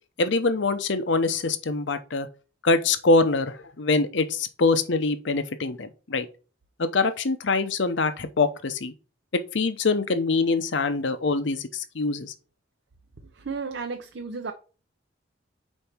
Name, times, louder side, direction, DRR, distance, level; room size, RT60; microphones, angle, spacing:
voice 1, 0.2-2.3 2.6-6.3 6.8-8.9 9.3-12.3, left 3 dB, 65° left, 0.7 m, -24 dB
voice 2, 13.4-14.5, right 4 dB, 65° right, 0.7 m, -33 dB
5.4 x 4.5 x 4.4 m
head